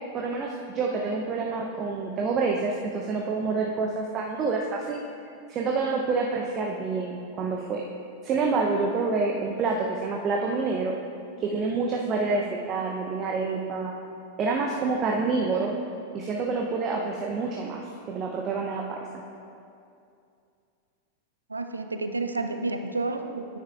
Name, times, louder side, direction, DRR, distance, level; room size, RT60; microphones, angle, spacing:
voice 1, 0.1-5.0 5.5-7.8 8.2-10.9 11.4-13.9 14.4-15.7 16.1-19.2, right 4 dB, 30° right, 0 dB, 0.7 m, -27 dB
voice 2, 21.5-23.6, right 3 dB, 80° right, 7 dB, 0.5 m, -30 dB
10.0 x 9.7 x 2.4 m, 2.5 s
figure-of-eight pair, 90°, 0 cm